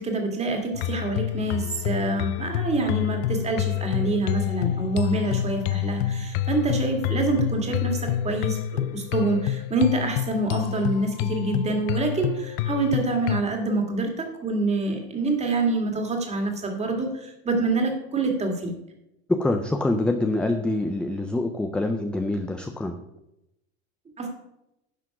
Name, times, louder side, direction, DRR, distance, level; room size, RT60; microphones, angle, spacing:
voice 1, 0.0-18.7 24.2-24.3, right 2 dB, 20° right, 3 dB, 2.0 m, -26 dB
sound 1, 0.7-13.4, left 12 dB, 55° left, 0.5 m, -28 dB
voice 2, 19.3-22.9, left 2 dB, 5° left, 5 dB, 0.3 m, -25 dB
11.0 x 5.9 x 5.9 m, 0.87 s
supercardioid pair, 145°, 35 cm